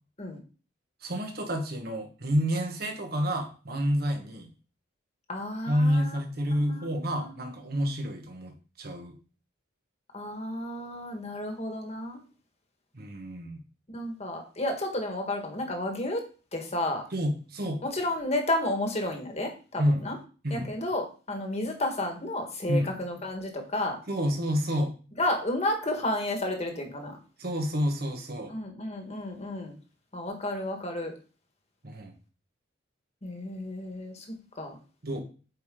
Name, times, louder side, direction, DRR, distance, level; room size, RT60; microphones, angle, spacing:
voice 1, 1.0-4.5 5.7-9.2 12.9-13.6 17.1-17.8 19.8-20.0 20.4-20.7 22.7-22.9 24.1-24.9 27.4-28.5 31.8-32.1 35.0-35.2, equal, 50° right, 4 dB, 1.5 m, -29 dB
voice 2, 5.3-6.2 6.5-7.3 7.7-7.8 10.1-12.2 13.9-16.2 16.5-17.0 17.8-20.1 20.5-24.0 25.2-27.2 28.5-29.8 30.1-31.1 33.2-34.2 34.6-34.8, left 1 dB, 35° left, 3 dB, 1.6 m, -32 dB
8.4 x 5.0 x 3.8 m, 0.37 s
head